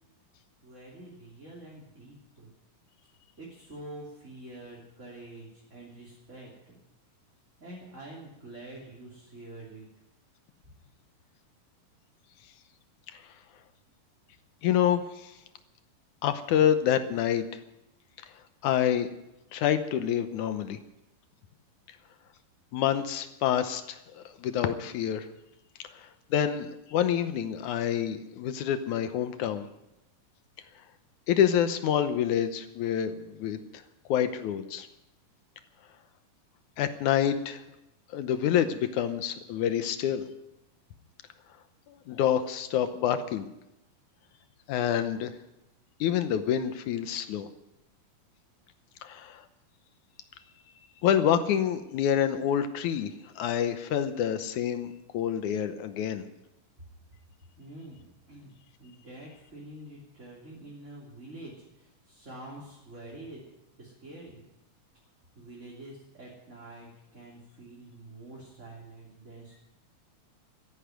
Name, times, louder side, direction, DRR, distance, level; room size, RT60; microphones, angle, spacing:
voice 1, 0.6-2.5 3.4-6.8 7.6-9.9 57.6-58.5 58.8-63.4 63.8-64.4 65.3-69.5, right 1 dB, 20° right, -5 dB, 3.1 m, -46 dB
voice 2, 14.6-15.4 16.2-17.5 18.6-19.1 19.5-20.8 22.7-25.3 25.9-29.7 31.3-33.8 34.1-34.9 36.8-37.6 38.1-40.2 41.9-43.5 44.7-45.3 46.0-47.5 49.0-49.5 51.0-56.3, left 9 dB, 70° left, 10 dB, 2.0 m, -27 dB
14.0 x 11.0 x 9.1 m, 0.90 s
omnidirectional pair, 4.1 m